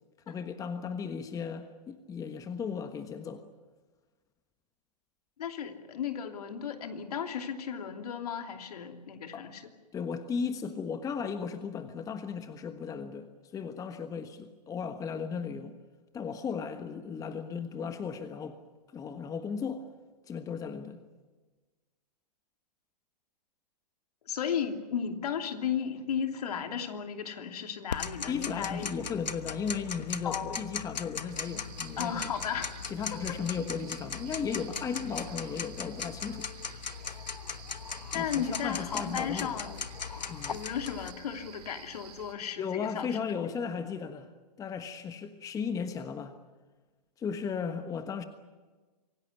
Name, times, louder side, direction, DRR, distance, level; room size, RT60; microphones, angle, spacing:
voice 1, 0.3-3.4 9.3-9.4 9.9-15.8 16.1-18.6 18.9-19.8 20.3-21.0 28.3-32.3 32.8-36.5 38.1-39.5 40.3-40.6 42.6-44.3 44.6-46.3 47.2-48.2, left 6 dB, 15° left, 9 dB, 1.3 m, -36 dB
voice 2, 5.4-9.7 24.3-28.9 30.2-30.6 32.0-32.7 33.1-33.4 38.1-39.8 40.5-43.2, left 7 dB, 65° left, 5 dB, 3.0 m, -35 dB
Tick-tock, 27.9-41.1, left 6 dB, 85° left, 1.1 m, -39 dB
sound 1, 31.3-42.3, right 8 dB, 60° right, 3.6 m, -51 dB
26.0 x 17.0 x 9.6 m, 1.3 s
hypercardioid pair, 125°, 21 cm